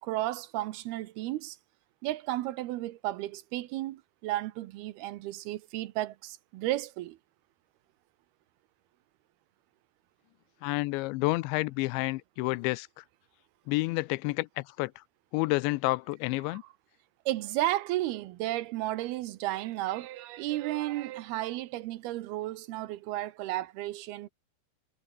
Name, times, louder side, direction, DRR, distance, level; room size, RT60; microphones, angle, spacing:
voice 1, 0.0-1.6 2.0-7.2 17.3-24.3, right 16 dB, 75° right, 2.5 m, -33 dB
voice 2, 10.6-13.0 13.7-15.0 15.3-16.6, left 22 dB, 90° left, 2.9 m, -30 dB
omnidirectional pair, 5.1 m